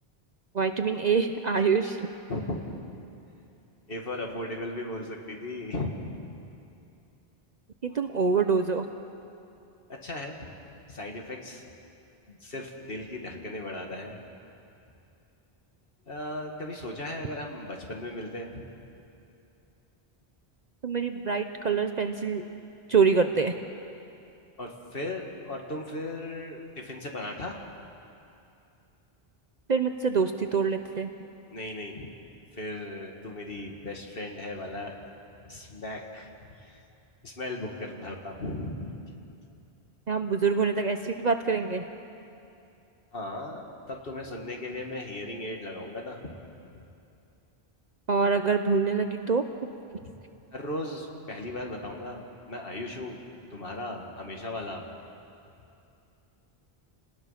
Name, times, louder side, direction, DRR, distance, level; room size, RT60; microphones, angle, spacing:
voice 1, 0.5-2.0 7.8-8.9 20.8-22.4 22.9-23.5 29.7-31.1 40.1-41.8 48.1-49.4, right 5 dB, 45° right, 7 dB, 0.8 m, -25 dB
voice 2, 3.9-5.9 9.9-10.4 10.9-11.6 12.3-14.2 16.1-18.6 24.6-27.6 31.5-32.1 32.5-35.0 35.5-36.8 37.2-38.9 43.1-46.3 46.7-46.8 50.0-50.1 50.5-53.2 53.5-54.9, left 1 dB, 65° left, 1 dB, 2.4 m, -37 dB
30.0 x 19.5 x 5.9 m, 2.7 s
omnidirectional pair, 1.0 m